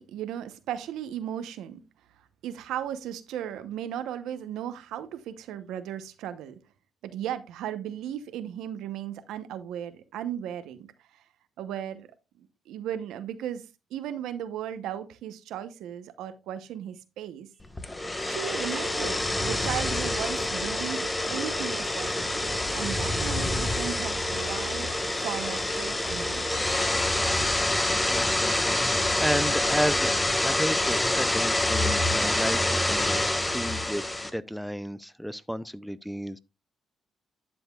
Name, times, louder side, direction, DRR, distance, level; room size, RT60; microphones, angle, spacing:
voice 1, 0.0-1.8 2.4-6.6 7.0-10.9 11.6-12.1 12.4-13.7 13.9-17.5 18.2-22.4 22.7-24.9 25.2-26.5, right 10 dB, 85° right, 0.8 m, -36 dB
sound 1, 17.8-34.3, left 1 dB, 15° left, 1.1 m, -27 dB
voice 2, 28.1-30.2 30.4-36.4, equal, ahead, 0.5 m, -32 dB
11.5 x 7.1 x 2.3 m
cardioid pair, 90°, 0 cm